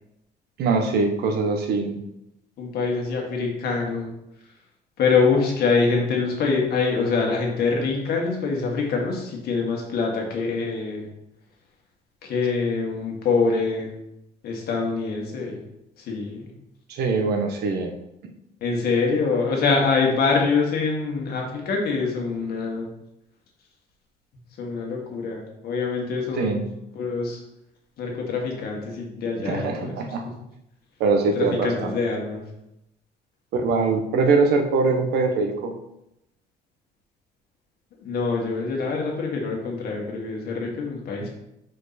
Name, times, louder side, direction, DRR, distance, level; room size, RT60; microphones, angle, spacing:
voice 1, 0.6-2.0 16.9-17.9 26.4-26.6 29.4-30.2 31.0-31.9 33.5-35.8, right 4 dB, 75° right, 4 dB, 1.0 m, -22 dB
voice 2, 2.6-4.1 5.0-11.1 12.2-13.9 14.4-15.6 16.0-16.5 18.6-22.9 24.6-26.6 26.9-27.4 28.0-30.0 31.3-32.4 38.0-41.4, left 4 dB, 65° left, 0 dB, 1.7 m, -25 dB
5.2 x 4.5 x 4.1 m, 0.85 s
cardioid pair, 110°, 17 cm